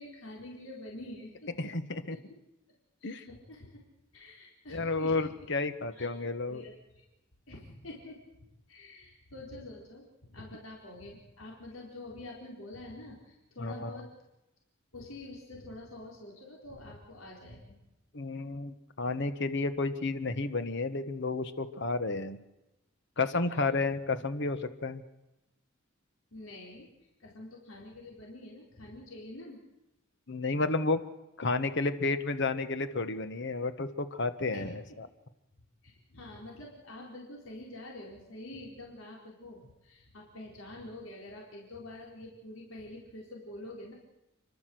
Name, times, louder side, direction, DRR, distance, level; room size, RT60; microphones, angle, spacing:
voice 1, 0.0-1.6 2.1-2.2 3.0-3.8 4.1-5.5 5.9-7.0 7.5-14.1 14.9-17.8 23.4-24.0 26.3-26.9 27.2-29.6 34.5-34.7 35.8-43.9, left 1 dB, 90° left, -2 dB, 4.2 m, -47 dB
voice 2, 1.6-2.1 3.0-3.2 4.7-6.6 13.6-14.0 18.1-22.4 23.2-25.0 30.3-31.0 31.4-35.1, left 3 dB, 60° left, 11 dB, 1.4 m, -31 dB
29.5 x 12.0 x 7.8 m, 0.94 s
head